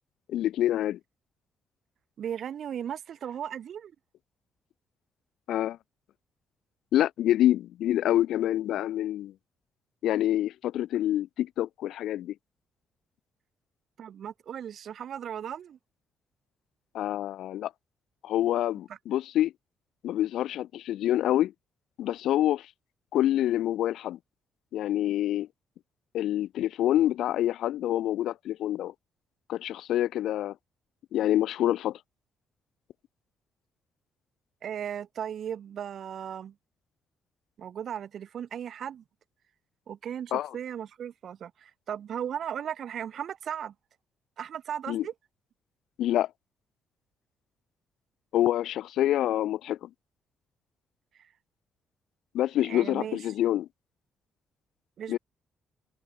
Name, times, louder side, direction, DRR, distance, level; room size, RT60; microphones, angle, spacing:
voice 1, 0.3-1.0 5.5-5.8 6.9-9.3 10.0-12.3 16.9-17.7 18.2-19.5 20.0-21.5 22.0-22.7 23.1-24.2 24.7-25.5 26.1-28.9 29.5-30.5 31.1-32.0 40.3-40.5 44.9-45.0 46.0-46.3 48.3-49.9 52.3-53.7 55.1-55.2, left 12 dB, 80° left, 0.6 m, -26 dB
voice 2, 2.2-3.9 14.0-15.8 34.6-36.5 37.6-39.0 39.9-43.7 44.4-45.1 51.2-51.3 52.7-53.2 55.0-55.2, right 9 dB, 60° right, 1.1 m, -36 dB
cardioid pair, 90°, 0 cm